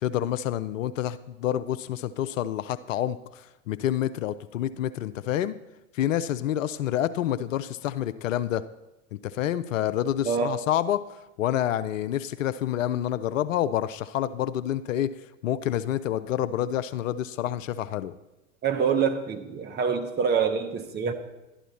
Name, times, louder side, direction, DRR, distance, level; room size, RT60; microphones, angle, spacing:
voice 1, 0.0-5.6 5.9-8.6 9.1-11.0 11.4-15.1 15.4-18.1, left 11 dB, 65° left, 14 dB, 0.6 m, -28 dB
voice 2, 10.2-10.6 18.6-21.1, right 6 dB, 25° right, 5 dB, 1.1 m, -26 dB
12.0 x 10.0 x 4.2 m, 0.97 s
hypercardioid pair, 95°, 43 cm